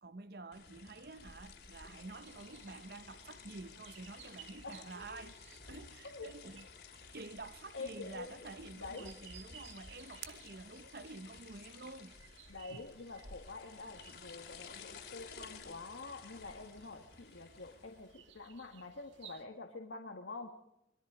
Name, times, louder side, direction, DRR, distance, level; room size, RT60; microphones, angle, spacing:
voice 1, 0.0-6.7 7.1-12.1 12.7-12.9, right 3 dB, 55° right, 0.8 m, -49 dB
sound 1, 0.5-18.2, left 5 dB, 60° left, 3.1 m, -54 dB
sound 2, 1.2-19.4, right 6 dB, 80° right, 2.2 m, -58 dB
voice 2, 7.7-8.5 8.8-9.1 12.5-20.5, left 3 dB, 80° left, 1.7 m, -47 dB
25.0 x 22.5 x 5.0 m
head